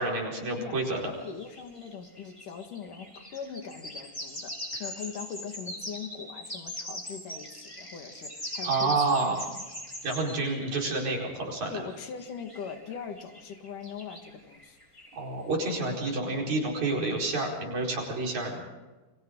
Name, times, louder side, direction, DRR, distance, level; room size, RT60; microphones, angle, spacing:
voice 1, 0.0-1.0 4.7-4.9 8.6-9.5 10.0-11.8 15.1-18.6, right 3 dB, 60° right, -1 dB, 6.1 m, -29 dB
voice 2, 0.6-4.5 4.8-9.4 11.7-14.8, left 6 dB, 80° left, 5 dB, 3.5 m, -41 dB
sound 1, 1.1-10.9 11.7-15.2, left 1 dB, 10° left, 3.5 m, -41 dB
29.5 x 24.0 x 3.9 m, 1.2 s
omnidirectional pair, 3.6 m